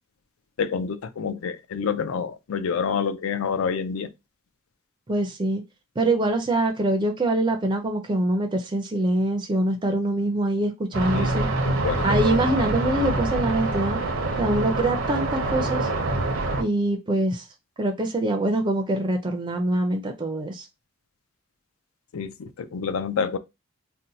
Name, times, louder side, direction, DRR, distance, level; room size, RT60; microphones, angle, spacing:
voice 1, 0.6-4.1 11.1-11.3 11.6-12.1 22.1-23.4, left 6 dB, 85° left, 0.4 m, -28 dB
voice 2, 5.1-5.6 6.0-11.5 12.0-14.0 14.4-15.9 16.6-17.4 17.8-20.6, right 1 dB, 20° right, 0.4 m, -24 dB
sound 1, 10.9-16.6, right 2 dB, 70° right, 0.7 m, -25 dB
2.7 x 2.1 x 3.8 m
head